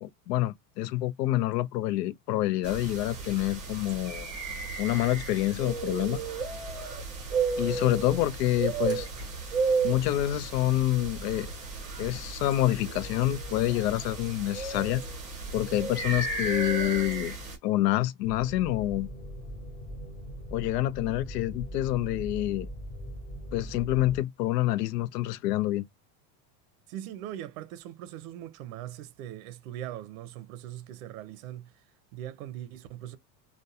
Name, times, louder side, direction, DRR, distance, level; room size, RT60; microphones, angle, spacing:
voice 1, 0.0-4.3 4.8-6.2 7.6-9.1 9.8-11.5 12.0-15.0 15.5-17.3 17.6-19.1 20.5-22.7 23.5-25.8, left 15 dB, 80° left, 0.6 m, -27 dB
sound 1, 2.6-17.6, right 4 dB, 15° right, 0.7 m, -33 dB
sound 2, 18.2-24.2, equal, 15° left, 0.9 m, -40 dB
voice 2, 26.9-33.2, right 12 dB, 60° right, 0.6 m, -41 dB
2.3 x 2.2 x 2.6 m
supercardioid pair, 165°, 48 cm